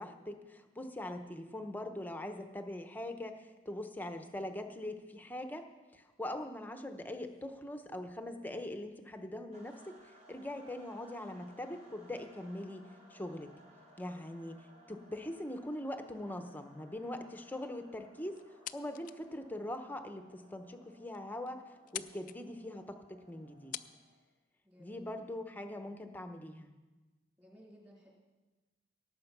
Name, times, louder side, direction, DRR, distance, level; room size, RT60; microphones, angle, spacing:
voice 1, 0.0-5.7 5.9-13.5 14.0-14.6 14.9-18.4 18.7-21.6 21.9-23.8 24.8-26.7, left 1 dB, 10° left, 6 dB, 0.9 m, -42 dB
sound 1, 9.5-24.3, equal, 45° right, 2.9 m, -61 dB
sound 2, 18.4-19.3 19.7-19.8 20.5-20.6 20.9-21.0 21.1-21.5 21.8-22.4 23.3-23.4 23.7-23.9, left 12 dB, 45° left, 0.4 m, -44 dB
voice 2, 24.6-25.3 27.4-28.1, equal, 15° right, -4 dB, 3.5 m, -58 dB
17.5 x 7.7 x 6.0 m, 1.2 s
head